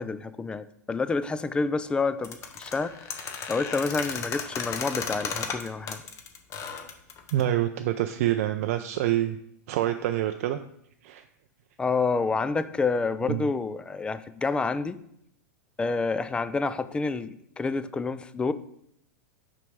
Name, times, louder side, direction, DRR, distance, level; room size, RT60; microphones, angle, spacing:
voice 1, 0.0-6.0 11.8-15.0 15.8-18.5, left 4 dB, 10° left, 13 dB, 0.4 m, -28 dB
sound 1, 2.2-7.5, left 6 dB, 35° left, 0.9 m, -34 dB
voice 2, 7.3-9.4 9.7-10.6 11.0-11.2 13.2-13.5, right 13 dB, 60° right, 7 dB, 0.4 m, -26 dB
5.9 x 5.2 x 4.6 m, 0.73 s
hypercardioid pair, 105°, 9 cm